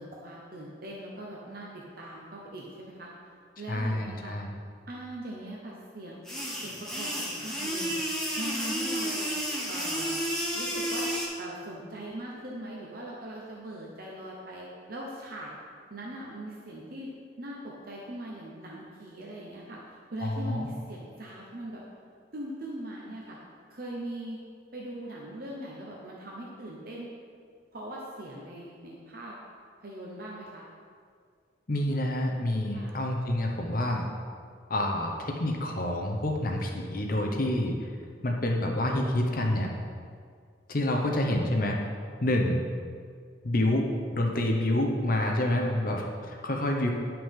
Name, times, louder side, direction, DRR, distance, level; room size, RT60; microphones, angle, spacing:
voice 1, 0.0-3.1 3.6-4.3 4.9-6.4 6.6-8.0 8.4-9.3 9.7-10.2 10.5-11.1 11.4-15.5 15.9-17.1 17.4-21.8 22.3-23.4 23.7-24.4 24.7-27.1 27.7-29.3 29.8-30.6 32.7-32.9 41.0-41.1 45.3-45.9, right 1 dB, 50° right, -3 dB, 1.0 m, -41 dB
voice 2, 3.7-4.5 20.2-20.7 31.7-34.1 34.7-37.7 38.2-39.7 40.7-41.8 42.2-42.6 43.4-43.9 44.1-46.9, left 1 dB, 45° left, 1 dB, 0.8 m, -28 dB
sound 1, 6.3-11.3, equal, 5° left, 1.2 m, -31 dB
10.0 x 5.8 x 3.7 m, 2.1 s
head